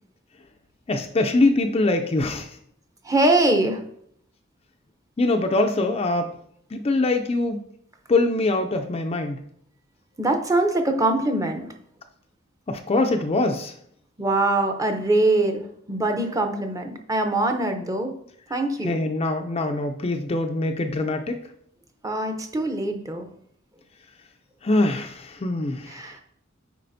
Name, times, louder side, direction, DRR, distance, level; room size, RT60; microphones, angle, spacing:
voice 1, 0.9-2.5 5.2-6.3 6.7-7.6 8.1-9.4 12.7-13.7 18.8-21.4 24.6-26.0, left 2 dB, 30° left, 5 dB, 0.4 m, -23 dB
voice 2, 3.0-3.8 10.2-11.7 14.2-18.1 18.5-18.9 22.0-23.3 25.9-26.2, right 2 dB, 15° right, 5 dB, 0.7 m, -23 dB
7.5 x 4.9 x 2.6 m, 0.67 s
head